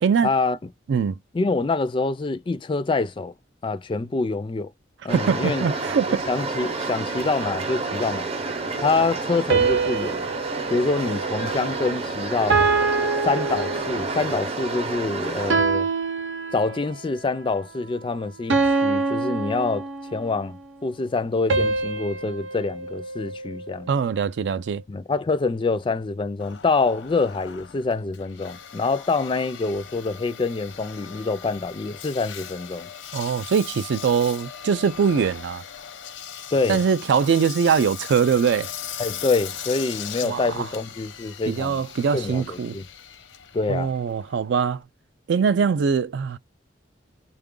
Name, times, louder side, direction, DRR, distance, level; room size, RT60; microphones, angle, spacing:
voice 1, 0.2-0.6 1.3-3.3 3.6-4.7 5.0-5.7 6.3-8.3 8.8-10.3 10.7-12.6 13.2-15.9 16.5-19.8 20.1-23.9 24.9-32.9 36.5-36.8 39.0-41.8 42.1-42.8 43.5-43.9, left 3 dB, 25° left, 0.4 m, -26 dB
sound 1, 5.1-15.5, right 3 dB, 35° right, 0.7 m, -29 dB
voice 2, 5.1-6.2 23.9-24.8 33.1-35.6 36.7-38.7 40.2-40.7 41.5-42.8 43.7-44.8 45.3-46.4, right 6 dB, 65° right, 0.4 m, -22 dB
sound 2, 9.5-12.0 12.5-14.3 15.5-17.0 18.5-20.4 21.5-23.9, right 4 dB, 80° right, 0.7 m, -25 dB
Engine, 26.4-44.8, left 8 dB, 85° left, 0.7 m, -39 dB
3.6 x 2.4 x 3.7 m
head